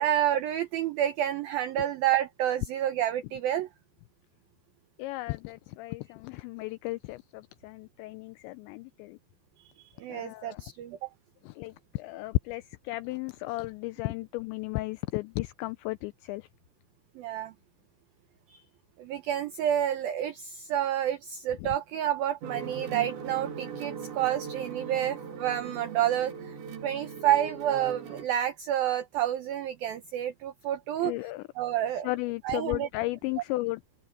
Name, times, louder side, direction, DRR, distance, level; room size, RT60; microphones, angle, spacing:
voice 1, 0.0-3.7 9.8-11.1 17.2-17.5 18.5-18.6 19.0-26.6 26.8-31.1 31.6-32.1 32.4-32.9, right 11 dB, 90° right, 2.0 m, -29 dB
voice 2, 5.0-9.2 10.1-10.6 11.5-16.5 21.6-21.7 31.0-31.4 32.0-33.8, left 20 dB, 85° left, 2.5 m, -34 dB
sound 1, 22.4-28.3, right 6 dB, 65° right, 5.9 m, -40 dB
omnidirectional pair, 5.6 m